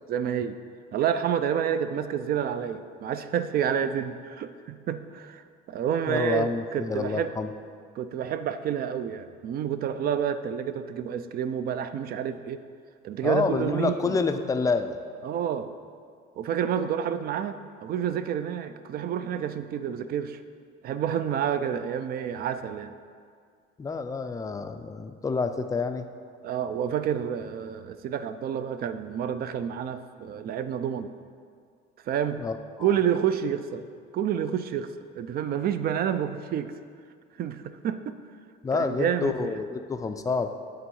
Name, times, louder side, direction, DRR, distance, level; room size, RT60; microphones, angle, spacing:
voice 1, 0.1-0.6 0.9-7.3 8.0-12.6 13.0-14.2 15.2-15.7 16.4-20.4 20.8-22.9 26.4-31.1 32.1-32.4 32.8-33.8 34.1-36.7 37.4-38.2 38.7-39.4, right 9 dB, 45° right, 11 dB, 0.4 m, -29 dB
voice 2, 6.1-7.5 13.2-15.0 23.8-26.1 32.4-32.9 38.6-40.5, left 4 dB, 15° left, 8 dB, 0.4 m, -28 dB
9.0 x 3.7 x 6.9 m, 2.1 s
cardioid pair, 135°, 21 cm